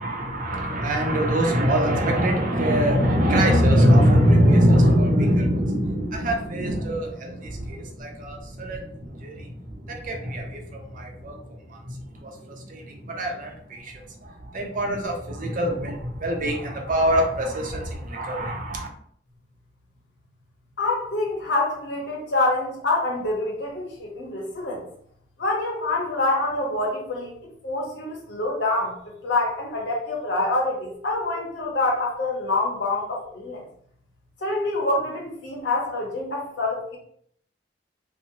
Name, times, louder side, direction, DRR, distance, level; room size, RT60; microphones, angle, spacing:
voice 1, 0.0-18.9, equal, 50° right, 2 dB, 0.5 m, -23 dB
voice 2, 20.8-24.8 25.4-27.3 27.6-33.6 34.4-37.0, left 2 dB, 80° left, -2 dB, 0.9 m, -26 dB
2.8 x 2.0 x 2.7 m, 0.65 s
head